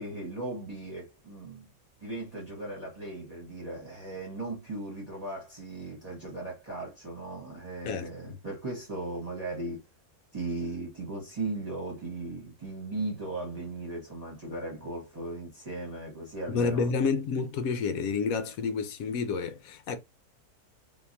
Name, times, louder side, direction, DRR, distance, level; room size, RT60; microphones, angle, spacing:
voice 1, 0.0-1.7 2.0-9.8 10.3-16.9, right 2 dB, 25° right, 1.2 m, -37 dB
voice 2, 7.8-8.4 16.5-20.0, left 5 dB, 70° left, 1.0 m, -29 dB
3.6 x 2.9 x 2.6 m
omnidirectional pair, 1.7 m